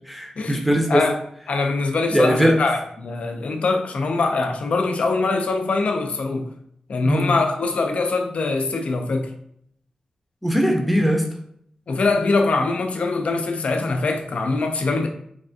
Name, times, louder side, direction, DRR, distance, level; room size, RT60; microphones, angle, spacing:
voice 1, 0.1-1.0 2.1-2.6 7.0-7.3 10.4-11.2, equal, ahead, 1 dB, 0.6 m, -20 dB
voice 2, 1.5-6.5 6.9-9.3 11.9-15.1, left 3 dB, 65° left, 5 dB, 0.4 m, -23 dB
3.3 x 2.3 x 2.6 m, 0.69 s
wide cardioid pair, 85°, 2 cm